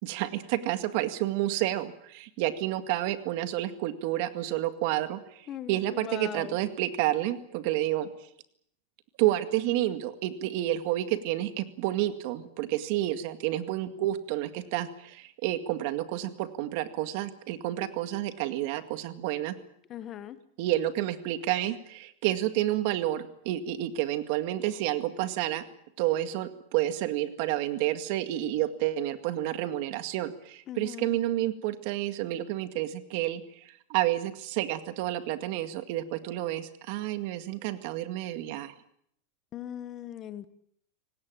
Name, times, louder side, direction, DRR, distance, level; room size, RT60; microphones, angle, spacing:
voice 1, 0.0-8.1 9.2-19.6 20.6-25.6 26.0-38.7, right 14 dB, 50° right, 10 dB, 2.0 m, -30 dB
voice 2, 5.5-6.6 19.9-20.4 30.7-31.2 39.5-40.5, left 11 dB, 25° left, 14 dB, 1.2 m, -39 dB
26.5 x 18.0 x 8.8 m, 0.71 s
supercardioid pair, 165°, 0 cm